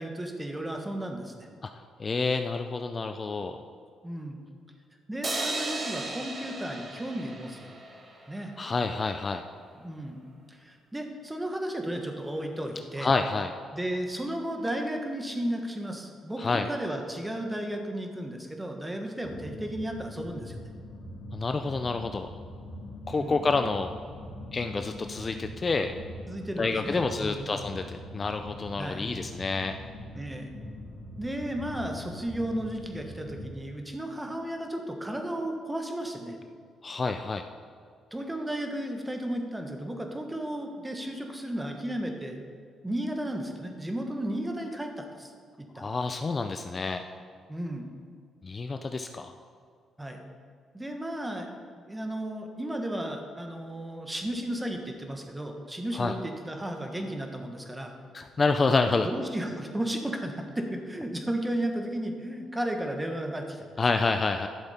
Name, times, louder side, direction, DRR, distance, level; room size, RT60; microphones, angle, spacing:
voice 1, 0.0-1.5 4.0-4.4 5.1-7.7 8.3-8.5 9.7-10.2 10.5-13.1 13.7-20.5 23.1-23.4 26.3-27.5 28.8-29.1 30.1-30.5 31.2-36.4 38.1-42.4 42.8-45.3 45.6-45.9 47.5-47.9 50.0-50.2 50.7-51.5 51.8-57.9 59.0-63.7, right 1 dB, 10° right, 3 dB, 1.3 m, -34 dB
voice 2, 2.0-3.6 8.6-9.4 13.0-13.5 16.4-16.7 21.3-22.3 23.1-23.9 24.5-25.9 26.6-29.7 36.8-37.4 45.7-47.1 48.4-49.3 55.9-56.1 58.1-59.1 63.8-64.5, left 4 dB, 35° left, 7 dB, 0.4 m, -28 dB
sound 1, 5.2-8.5, right 2 dB, 35° right, 1.4 m, -35 dB
sound 2, 19.2-33.5, left 1 dB, 60° left, 2.8 m, -42 dB
11.5 x 6.9 x 4.3 m, 2.2 s
cardioid pair, 90°, 0 cm